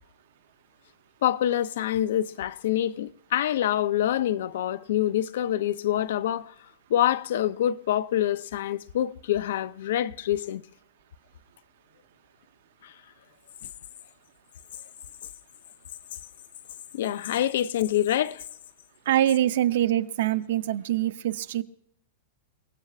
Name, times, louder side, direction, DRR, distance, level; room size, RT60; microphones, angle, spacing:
voice 1, 1.2-6.5 6.9-10.6 12.8-12.9 16.9-18.4, left 12 dB, 65° left, 0.6 m, -26 dB
voice 2, 19.1-21.6, right 12 dB, 60° right, 0.7 m, -24 dB
29.5 x 17.5 x 2.5 m
supercardioid pair, 165°, 0 cm